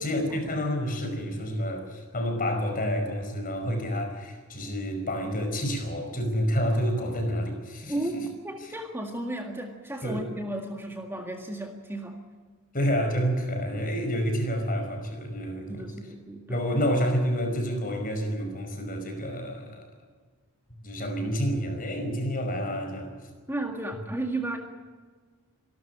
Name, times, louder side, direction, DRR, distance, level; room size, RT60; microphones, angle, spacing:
voice 1, 0.0-8.3 8.6-8.7 10.0-10.3 12.7-15.9 16.5-19.9 20.8-23.1, equal, 40° left, 5 dB, 5.3 m, -29 dB
voice 2, 7.9-12.2 15.7-16.9 23.5-24.6, right 1 dB, 10° right, 3 dB, 1.9 m, -34 dB
26.5 x 13.0 x 10.0 m, 1.5 s
head